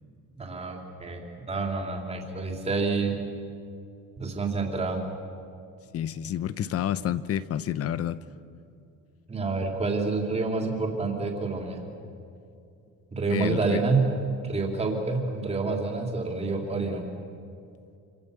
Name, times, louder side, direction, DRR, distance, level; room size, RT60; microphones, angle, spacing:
voice 1, 0.3-3.2 4.2-5.0 9.3-11.8 13.1-14.1 14.4-17.0, right 4 dB, 20° right, 1 dB, 3.4 m, -28 dB
voice 2, 5.9-8.2 13.3-13.8, left 10 dB, 45° left, 15 dB, 0.8 m, -29 dB
27.0 x 26.5 x 7.1 m, 2.5 s
cardioid pair, 170°, 33 cm